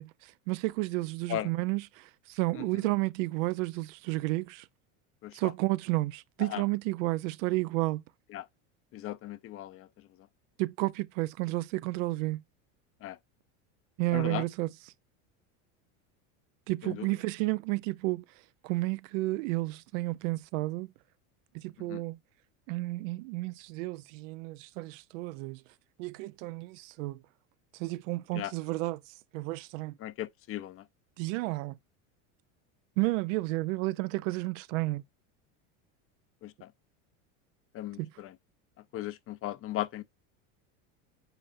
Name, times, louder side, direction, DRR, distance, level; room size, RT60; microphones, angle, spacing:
voice 1, 0.0-4.6 5.3-8.0 10.6-12.4 14.0-14.7 16.7-18.2 18.6-20.9 21.5-22.2 22.7-25.6 26.0-27.2 27.8-29.0 29.3-29.9 31.2-31.8 33.0-35.0 38.0-38.1, right 21 dB, 70° right, 0.5 m, -31 dB
voice 2, 8.9-9.9 13.0-13.2 14.1-14.4 16.8-17.1 21.9-22.0 28.3-28.5 30.0-30.8 36.4-36.7 37.7-38.3 38.9-40.0, left 13 dB, 35° left, 0.5 m, -37 dB
9.1 x 5.3 x 2.5 m
supercardioid pair, 130°, 40 cm